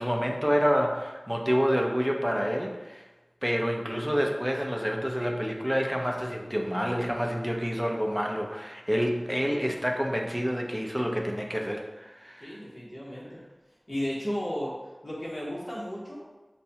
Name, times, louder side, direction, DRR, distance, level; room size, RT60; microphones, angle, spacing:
voice 1, 0.0-3.0 3.4-12.6, equal, 5° right, 1 dB, 0.6 m, -28 dB
voice 2, 12.4-13.4 13.9-14.7 15.0-16.3, equal, 35° left, -6 dB, 1.1 m, -34 dB
6.5 x 2.2 x 2.8 m, 1.2 s
wide cardioid pair, 50°, 0 cm